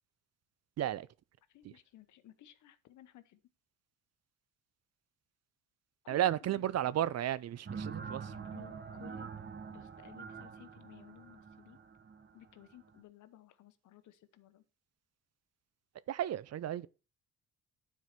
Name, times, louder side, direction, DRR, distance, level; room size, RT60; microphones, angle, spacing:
voice 1, 1.5-3.4 6.0-6.9 8.5-9.3 9.7-11.8 12.3-14.6, left 12 dB, 75° left, 1.1 m, -57 dB
voice 2, 6.1-8.3 16.1-16.9, right 12 dB, 55° right, 0.6 m, -33 dB
sound 1, 7.6-13.0, right 5 dB, 35° right, 1.2 m, -45 dB
9.4 x 4.7 x 6.0 m
cardioid pair, 90°, 30 cm